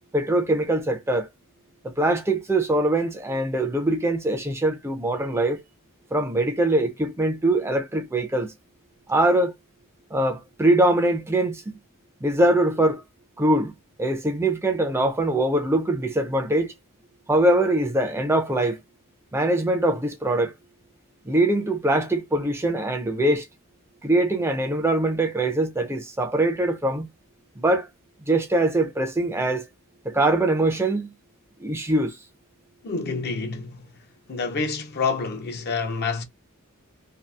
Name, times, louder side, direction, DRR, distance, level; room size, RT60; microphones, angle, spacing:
voice 1, 0.1-1.3 1.8-5.6 6.1-8.5 9.1-9.5 10.1-11.8 12.2-13.0 13.4-13.7 14.0-16.7 17.3-18.8 19.3-20.5 21.3-23.5 24.0-27.1 27.6-27.9 28.3-29.7 30.0-31.1 31.6-32.2, right 1 dB, 10° right, 0.4 m, -22 dB
voice 2, 32.8-33.9 34.3-36.2, left 4 dB, 50° left, 0.5 m, -28 dB
2.7 x 2.3 x 2.2 m
head